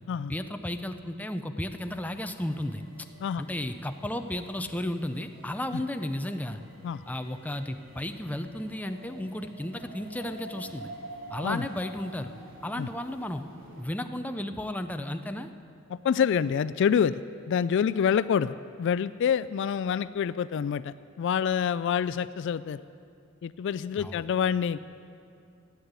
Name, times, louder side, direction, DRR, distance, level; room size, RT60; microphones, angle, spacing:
voice 1, 0.3-2.8 3.4-6.6 7.1-10.9 11.3-12.3 12.6-13.4 13.8-15.5 24.0-24.2, left 1 dB, 10° left, 7 dB, 0.5 m, -33 dB
sound 1, 1.8-13.8, right 1 dB, 70° right, 2.8 m, -48 dB
voice 2, 15.9-17.2 17.5-22.8 23.4-24.8, left 7 dB, 60° left, 16 dB, 0.3 m, -27 dB
15.0 x 9.8 x 8.1 m, 2.5 s
head